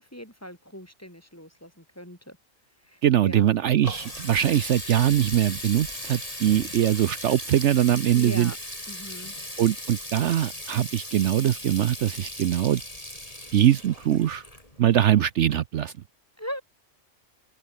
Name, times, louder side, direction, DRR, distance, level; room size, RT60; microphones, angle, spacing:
voice 1, 0.0-2.4 2.9-3.5 8.1-8.6 8.9-9.3 16.4-16.6, equal, 10° left, 4.9 m, -39 dB
voice 2, 3.0-8.5 9.6-12.8 13.5-14.4 14.8-15.9, right 11 dB, 65° right, 0.9 m, -22 dB
Water tap faucet, 3.4-15.1, left 1 dB, 25° left, 8.0 m, -38 dB
open air
omnidirectional pair, 1.3 m